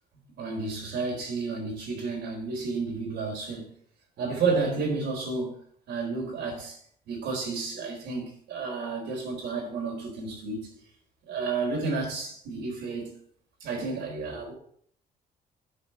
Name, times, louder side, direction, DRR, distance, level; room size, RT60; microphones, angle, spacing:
voice 1, 0.3-3.7 4.2-5.6 5.9-6.8 7.1-10.8 11.3-13.1 13.6-14.5, right 4 dB, 80° right, 4.1 m, -31 dB
8.6 x 5.1 x 7.6 m
supercardioid pair, 70°, 18 cm